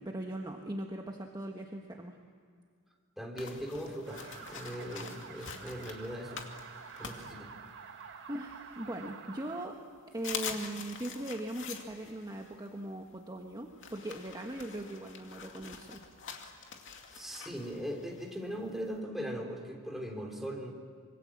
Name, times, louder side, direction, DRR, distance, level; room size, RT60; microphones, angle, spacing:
voice 1, 0.0-2.2 7.0-7.2 7.8-9.7 10.1-16.0, right 1 dB, 20° right, 2 dB, 1.5 m, -40 dB
voice 2, 3.2-4.2 4.5-6.3 7.0-7.5 17.1-20.7, equal, ahead, 1 dB, 3.6 m, -39 dB
sound 1, 3.4-8.0 8.5-9.4 9.8-9.9 10.1-19.0, left 6 dB, 60° left, 2.5 m, -46 dB
sound 2, 4.1-9.7, right 6 dB, 55° right, 1.7 m, -49 dB
26.0 x 23.5 x 7.5 m, 2.1 s
head